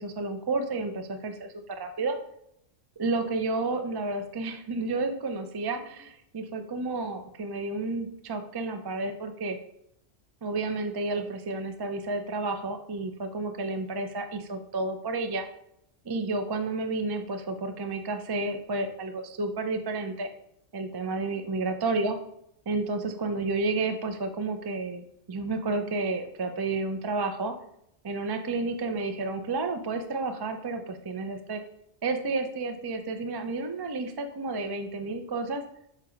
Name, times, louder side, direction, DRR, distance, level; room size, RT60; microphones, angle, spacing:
voice 1, 0.0-2.2 3.0-9.6 10.4-15.5 16.0-20.3 20.7-22.2 22.7-27.5 28.0-31.6 32.0-35.6, right 3 dB, 35° right, 6 dB, 0.4 m, -31 dB
7.5 x 3.0 x 5.0 m, 0.75 s
omnidirectional pair, 1.2 m